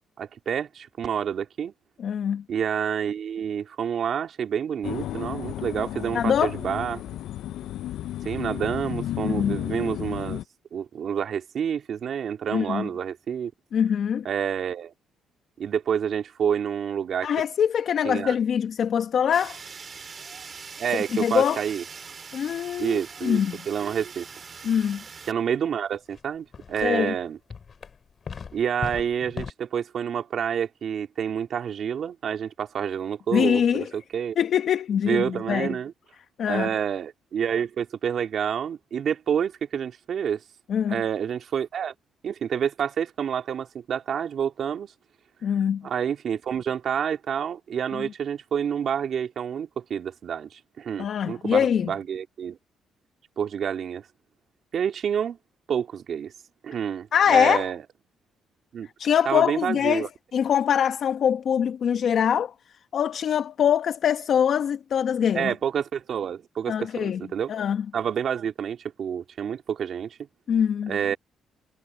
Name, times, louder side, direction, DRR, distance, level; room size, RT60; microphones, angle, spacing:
voice 1, 0.2-1.7 2.5-7.0 8.2-10.4 10.7-13.5 14.2-14.9 15.6-17.3 18.0-18.3 20.8-21.8 22.8-23.4 23.7-24.3 25.3-27.4 28.5-34.3 35.0-35.9 36.5-40.4 40.9-41.9 42.2-44.9 45.8-52.6 53.4-54.0 54.7-55.4 55.7-56.3 56.6-57.8 58.7-58.9 59.2-60.1 65.3-67.5 67.9-70.2 70.9-71.2, right 8 dB, 60° right, 3.1 m, -28 dB
voice 2, 2.0-2.4 6.1-6.5 9.2-9.6 12.5-12.9 13.7-14.2 17.2-19.6 20.9-21.6 22.3-23.6 24.6-25.0 26.8-27.1 33.3-33.9 34.4-35.8 36.4-36.7 40.7-41.0 45.4-45.9 47.9-48.1 51.0-51.9 57.1-57.7 59.0-62.5 62.9-65.5 66.7-67.2 67.5-67.9 70.5-71.0, left 8 dB, 60° left, 1.0 m, -23 dB
sound 1, 4.8-10.4, left 13 dB, 80° left, 0.5 m, -33 dB
Fire, 19.3-25.3, right 5 dB, 40° right, 2.4 m, -42 dB
sound 2, 26.1-26.2 26.5-27.1 27.5-29.5, left 6 dB, 45° left, 5.4 m, -37 dB
cardioid pair, 90°, 0 cm